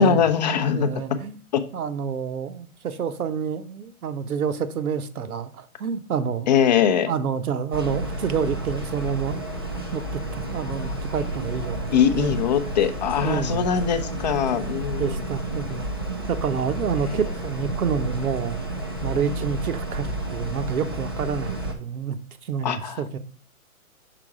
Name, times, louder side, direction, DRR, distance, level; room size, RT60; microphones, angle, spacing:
voice 1, 0.0-1.2 1.5-1.6 6.5-7.1 11.9-15.2 17.0-17.2 22.6-23.0, left 8 dB, 30° left, 0.5 m, -22 dB
voice 2, 0.7-1.4 1.7-6.5 7.1-9.4 9.9-12.3 13.2-13.7 15.0-15.9 16.3-18.6 19.0-23.2, right 7 dB, 80° right, 0.9 m, -28 dB
sound 1, 7.7-21.7, right 1 dB, 20° right, 0.3 m, -31 dB
6.0 x 4.5 x 4.8 m
hypercardioid pair, 140°, 43 cm